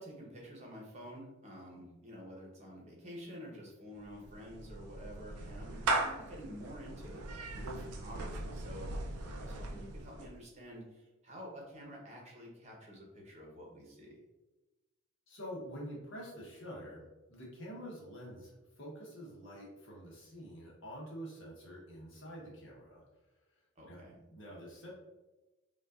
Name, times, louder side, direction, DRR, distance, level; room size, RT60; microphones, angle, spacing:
voice 1, 0.0-7.2 7.5-14.2 23.8-24.1, equal, 30° right, -2 dB, 0.9 m, -49 dB
Clapping / Meow, 4.0-10.4, right 2 dB, 90° right, 0.5 m, -39 dB
voice 2, 15.3-17.0 17.3-23.0 23.9-24.0 24.3-24.9, equal, 55° left, -4 dB, 1.2 m, -47 dB
5.3 x 2.5 x 2.5 m, 1.1 s
head